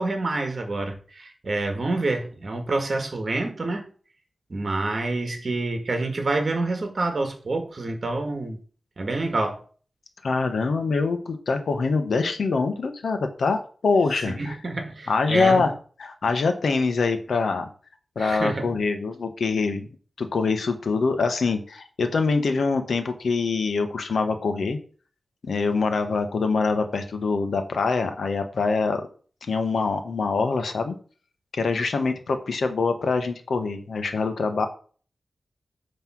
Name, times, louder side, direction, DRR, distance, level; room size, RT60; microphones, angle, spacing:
voice 1, 0.0-3.8 4.5-8.6 9.0-9.6 14.4-15.6 18.2-18.7, right 2 dB, 45° right, 1.7 m, -27 dB
voice 2, 10.2-14.6 15.1-15.7 16.0-17.7 18.1-19.9 20.2-24.8 25.4-29.1 29.5-30.9 31.5-34.7, left 4 dB, 80° left, 1.2 m, -24 dB
9.3 x 3.4 x 6.1 m
wide cardioid pair, 120°, 0 cm